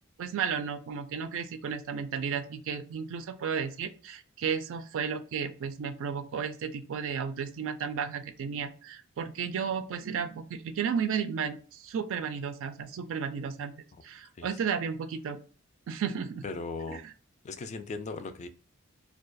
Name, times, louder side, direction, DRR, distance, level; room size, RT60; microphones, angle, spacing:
voice 1, 0.2-13.7 14.0-15.4 15.9-16.4 16.9-17.0, right 6 dB, 65° right, 0.4 m, -33 dB
voice 2, 16.4-17.0 17.4-18.5, left 3 dB, 35° left, 0.3 m, -37 dB
2.3 x 2.2 x 2.5 m
head